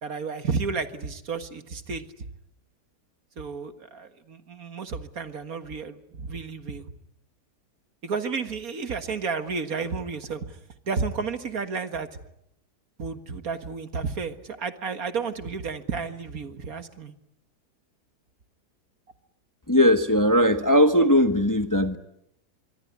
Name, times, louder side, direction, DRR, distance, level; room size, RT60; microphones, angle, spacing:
voice 1, 0.0-2.3 3.4-6.9 8.0-10.6 10.9-12.2 13.0-17.1, right 5 dB, 60° right, 9 dB, 2.0 m, -32 dB
voice 2, 19.7-22.0, equal, 15° left, 8 dB, 1.1 m, -19 dB
25.0 x 23.5 x 9.5 m, 0.77 s
omnidirectional pair, 1.8 m